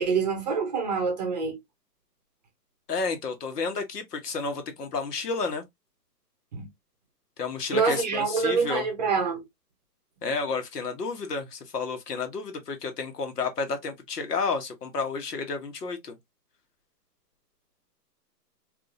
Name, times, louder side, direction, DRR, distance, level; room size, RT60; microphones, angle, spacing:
voice 1, 0.0-1.6 6.5-6.7 7.7-9.4, right 5 dB, 25° right, 0.7 m, -26 dB
voice 2, 2.9-5.6 7.4-8.9 10.2-16.1, left 4 dB, 70° left, 1.3 m, -31 dB
3.6 x 2.7 x 2.5 m
hypercardioid pair, 155°, 49 cm